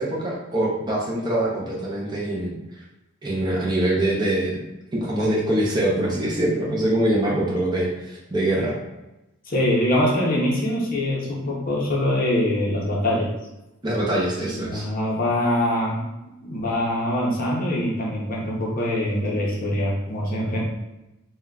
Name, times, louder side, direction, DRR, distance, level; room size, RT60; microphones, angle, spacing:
voice 1, 0.0-2.5 3.2-4.6 4.9-8.8 13.8-14.9, right 1 dB, 20° right, -5 dB, 0.5 m, -24 dB
voice 2, 9.5-13.3 14.5-16.0 16.4-20.6, left 1 dB, 40° left, -3 dB, 0.6 m, -23 dB
3.6 x 2.2 x 2.2 m, 0.96 s
head